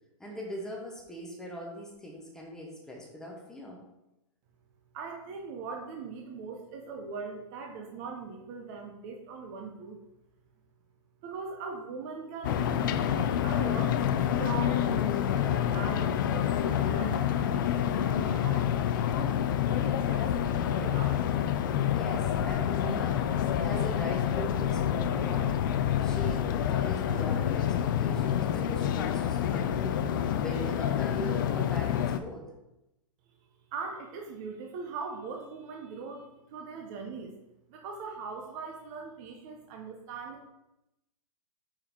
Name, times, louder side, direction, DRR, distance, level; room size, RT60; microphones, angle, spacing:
voice 1, 0.2-3.8 21.9-23.3 23.6-25.6 26.0-30.1 30.3-32.5, equal, 5° left, -2 dB, 0.8 m, -41 dB
voice 2, 4.9-10.0 11.2-14.0 14.4-18.7 19.1-19.4 19.8-21.2 33.7-37.3 37.7-40.5, right 5 dB, 30° right, 1 dB, 0.7 m, -41 dB
sound 1, 12.4-32.2, left 10 dB, 40° left, 0.4 m, -28 dB
5.3 x 4.8 x 4.3 m, 0.88 s
hypercardioid pair, 165°, 17 cm